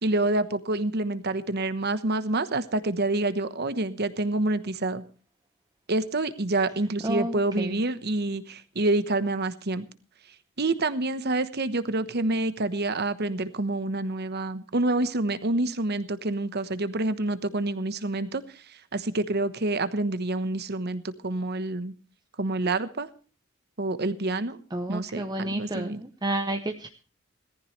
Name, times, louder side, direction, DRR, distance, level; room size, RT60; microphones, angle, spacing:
voice 1, 0.0-5.0 5.9-9.8 10.6-18.6 18.9-21.9 22.4-23.1 23.8-24.6 24.9-26.0, right 2 dB, 50° right, 13 dB, 1.2 m, -27 dB
voice 2, 7.0-7.8 24.7-26.9, right 1 dB, 20° right, 6 dB, 0.9 m, -31 dB
18.0 x 15.0 x 3.3 m, 0.37 s
head